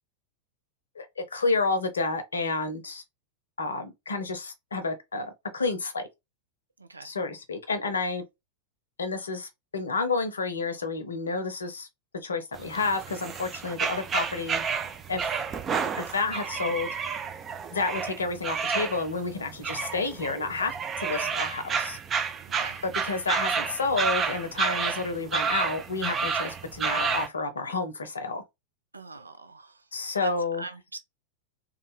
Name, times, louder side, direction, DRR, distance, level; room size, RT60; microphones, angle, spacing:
voice 1, 1.0-3.0 3.6-6.1 7.0-8.2 9.0-11.9 12.2-14.6 15.1-15.3 16.0-16.9 17.7-22.0 22.8-28.4 29.9-30.6, left 3 dB, 70° left, 0.7 m, -30 dB
voice 2, 6.8-7.1 22.6-22.8 28.9-29.8 30.2-30.3 30.6-31.0, right 3 dB, 80° right, 0.4 m, -42 dB
sound 1, 12.5-27.3, right 6 dB, 25° right, 0.5 m, -30 dB
3.2 x 2.3 x 3.3 m
figure-of-eight pair, 90°, 0 cm